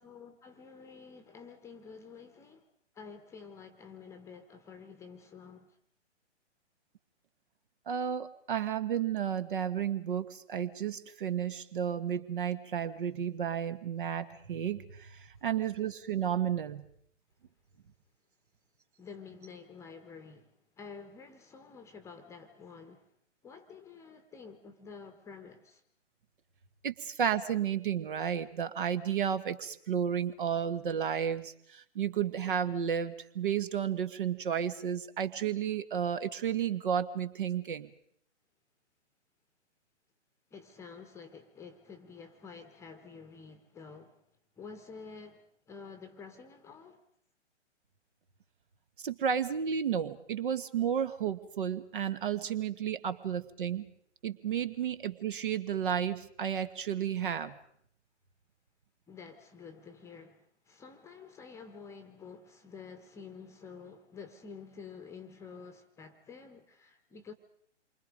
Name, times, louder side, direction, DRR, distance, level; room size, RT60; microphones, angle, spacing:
voice 1, 0.0-2.6 2.9-5.7 19.0-20.5 20.8-23.1 23.4-25.8 40.5-44.2 44.6-47.0 59.1-67.3, left 5 dB, 10° left, 1.3 m, -49 dB
voice 2, 7.9-15.1 15.4-16.8 26.8-37.9 49.0-53.9 54.2-57.5, right 8 dB, 45° right, 1.6 m, -32 dB
28.0 x 24.5 x 5.2 m
figure-of-eight pair, 125°, 36 cm